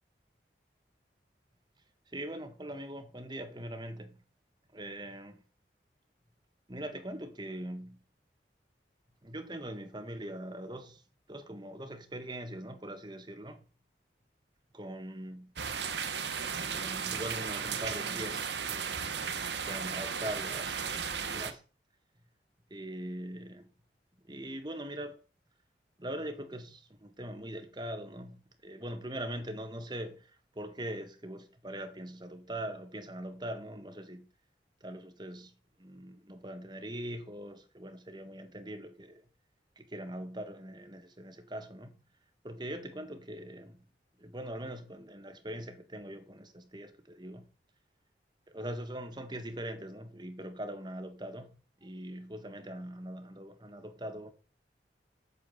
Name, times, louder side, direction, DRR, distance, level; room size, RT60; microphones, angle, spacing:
voice 1, 2.1-4.2 4.7-5.4 6.7-8.0 9.2-11.0 11.3-13.6 14.7-15.5 16.7-19.0 19.3-21.6 22.7-23.7 24.2-25.2 26.0-34.3 34.8-35.5 35.8-39.2 39.8-41.9 42.4-43.8 44.2-47.5 48.5-54.3, right 1 dB, 25° right, 1.8 m, -42 dB
sound 1, 15.6-21.5, right 6 dB, 80° right, 1.4 m, -35 dB
8.5 x 8.5 x 7.0 m
head